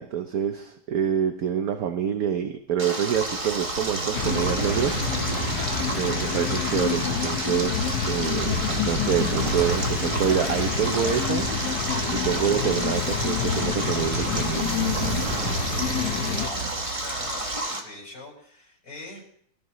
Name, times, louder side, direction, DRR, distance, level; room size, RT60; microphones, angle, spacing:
voice 1, 0.0-5.4 5.9-11.5 12.1-14.7, right 8 dB, 60° right, 7 dB, 1.2 m, -27 dB
Stream, 2.8-17.8, right 2 dB, 20° right, 1.4 m, -31 dB
Train / Sliding door, 3.1-7.2 8.0-12.8 13.7-17.6, right 6 dB, 75° right, 1.9 m, -35 dB
sound 1, 4.1-16.5, left 7 dB, 70° left, 1.7 m, -28 dB
voice 2, 5.5-6.0 15.2-19.3, left 3 dB, 50° left, -3 dB, 6.5 m, -42 dB
25.0 x 14.0 x 3.1 m, 0.65 s
omnidirectional pair, 2.0 m